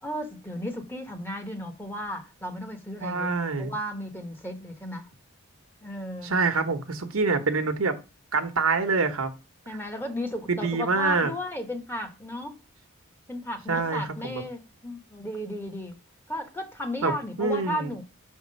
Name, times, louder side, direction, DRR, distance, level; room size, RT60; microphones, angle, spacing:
voice 1, 0.0-3.3 3.6-5.1 5.8-6.3 9.7-12.6 13.3-16.0 16.3-18.0, left 1 dB, 10° left, 1.0 m, -34 dB
voice 2, 3.0-3.7 6.2-7.9 8.3-9.3 10.5-11.3 13.7-14.4 17.0-17.1 17.4-17.9, right 4 dB, 85° right, 1.0 m, -26 dB
5.9 x 3.6 x 5.3 m
head